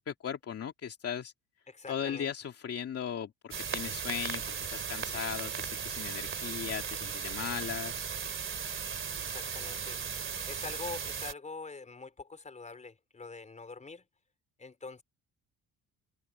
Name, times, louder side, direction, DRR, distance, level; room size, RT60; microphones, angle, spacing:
voice 1, 0.0-1.3 1.9-8.1, left 8 dB, 40° left, 2.6 m, -37 dB
voice 2, 1.7-2.3 9.3-14.0 14.6-15.0, left 4 dB, 20° left, 4.1 m, -45 dB
sound 1, 3.5-11.3, right 7 dB, 35° right, 2.9 m, -37 dB
open air
cardioid pair, 130°, 35 cm